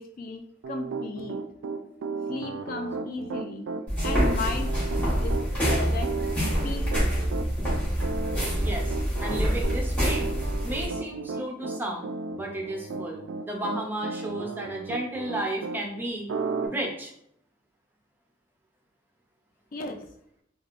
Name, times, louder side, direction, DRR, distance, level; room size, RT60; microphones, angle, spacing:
voice 1, 0.0-1.4 2.3-3.7 4.0-4.7 5.2-6.1 6.6-7.2 19.7-20.0, left 3 dB, 45° left, 5 dB, 0.3 m, -35 dB
Piano, 0.6-15.8 16.3-16.7, right 4 dB, 75° right, 0.3 m, -34 dB
sound 1, 3.9-10.8, equal, 10° left, 1.4 m, -26 dB
voice 2, 8.6-10.3 10.6-12.1 12.4-16.3 16.6-17.1, right 1 dB, 10° right, 0 dB, 0.5 m, -33 dB
3.3 x 2.4 x 2.5 m, 0.70 s
head